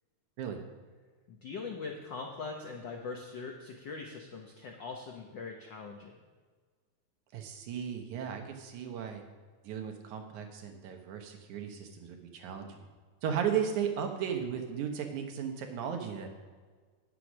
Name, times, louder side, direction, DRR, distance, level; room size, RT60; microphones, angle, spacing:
voice 1, 1.3-6.2, left 4 dB, 70° left, 2 dB, 1.0 m, -42 dB
voice 2, 7.3-9.2 9.6-12.9 13.2-16.3, right 8 dB, 80° right, 4 dB, 2.5 m, -35 dB
9.8 x 7.5 x 6.1 m, 1.5 s
omnidirectional pair, 3.4 m